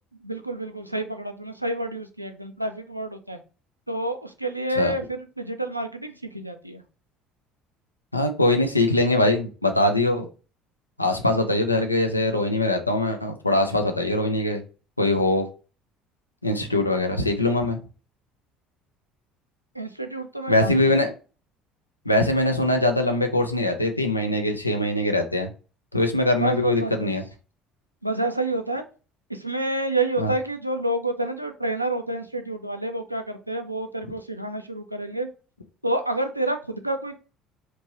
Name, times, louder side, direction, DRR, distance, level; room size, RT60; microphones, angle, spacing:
voice 1, 0.2-3.4 3.9-6.8 19.7-21.0 26.4-27.1 28.0-28.8 29.3-35.3 35.8-37.2, right 1 dB, 90° right, 7 dB, 0.3 m, -29 dB
voice 2, 8.1-10.2 11.0-14.6 15.0-15.4 16.4-17.8 20.5-21.1 22.1-25.5 25.9-27.2 30.2-30.3, left 1 dB, 85° left, 5 dB, 0.4 m, -22 dB
2.9 x 2.6 x 2.8 m, 0.35 s
figure-of-eight pair, 60°, 0 cm